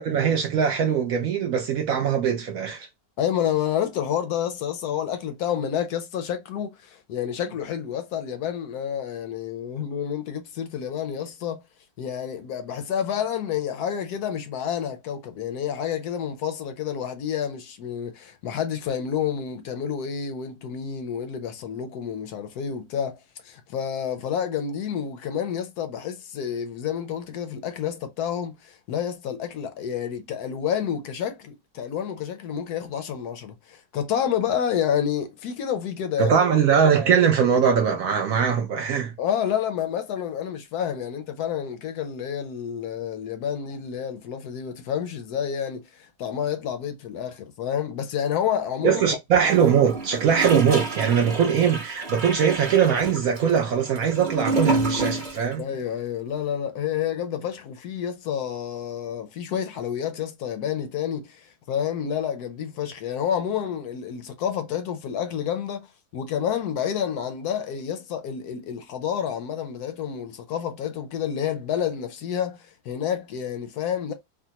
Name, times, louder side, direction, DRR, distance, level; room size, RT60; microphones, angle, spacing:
voice 1, 0.0-2.9 36.2-39.1 48.8-55.6, right 7 dB, 70° right, 0.8 m, -21 dB
voice 2, 3.2-11.6 12.0-23.2 23.4-36.4 39.2-49.0 55.6-65.9 66.1-74.1, left 8 dB, 70° left, 1.0 m, -29 dB
Gurgling / Toilet flush, 49.4-55.5 55.8-55.9, right 3 dB, 40° right, 0.8 m, -29 dB
3.5 x 2.1 x 2.8 m
omnidirectional pair, 1.9 m